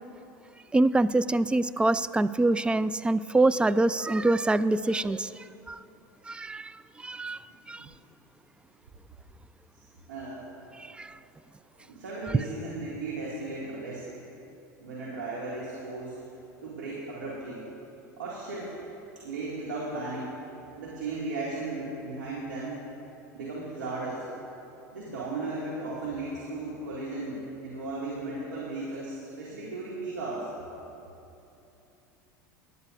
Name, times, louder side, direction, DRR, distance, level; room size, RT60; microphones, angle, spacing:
voice 1, 0.7-5.3 5.7-5.8 6.3-7.9 10.9-11.2, right 2 dB, 10° right, 15 dB, 0.3 m, -25 dB
voice 2, 10.1-10.5 11.9-14.1 14.8-16.2 16.6-17.6 18.2-18.8 19.2-20.4 20.8-22.8 23.3-24.3 24.9-30.5, right 2 dB, 90° right, -6 dB, 2.1 m, -36 dB
20.5 x 11.0 x 2.5 m, 2.9 s
hypercardioid pair, 90°, 10 cm